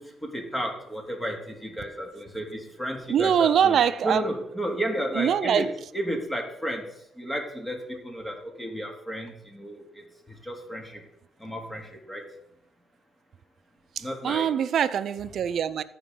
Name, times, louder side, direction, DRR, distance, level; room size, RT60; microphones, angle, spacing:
voice 1, 0.0-3.8 4.0-5.7 5.9-6.8 7.2-9.8 10.4-11.0 11.4-12.2 14.0-14.5, equal, 10° left, 2.1 m, -32 dB
voice 2, 3.1-4.3 5.1-5.7 14.0-15.8, right 8 dB, 65° right, 0.5 m, -23 dB
14.5 x 5.1 x 3.7 m
cardioid pair, 90°, 0 cm